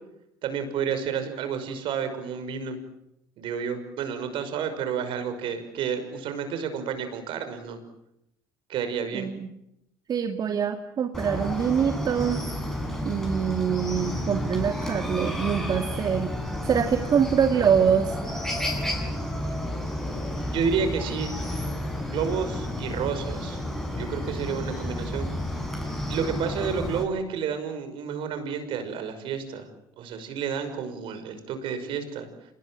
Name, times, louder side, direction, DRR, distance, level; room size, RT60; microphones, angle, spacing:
voice 1, 0.4-2.8 3.4-7.8 8.7-9.3 20.5-21.3 22.1-23.6 23.9-25.6 26.1-29.7 30.0-32.3, right 6 dB, 65° right, 9 dB, 5.9 m, -30 dB
voice 2, 9.1-9.5 10.1-12.4 13.0-16.3 16.6-18.2, right 7 dB, 45° right, 6 dB, 2.2 m, -24 dB
Chicken rooster, 11.1-27.0, left 1 dB, 5° left, 8.0 m, -31 dB
27.5 x 21.0 x 8.9 m, 0.82 s
hypercardioid pair, 75°, 10 cm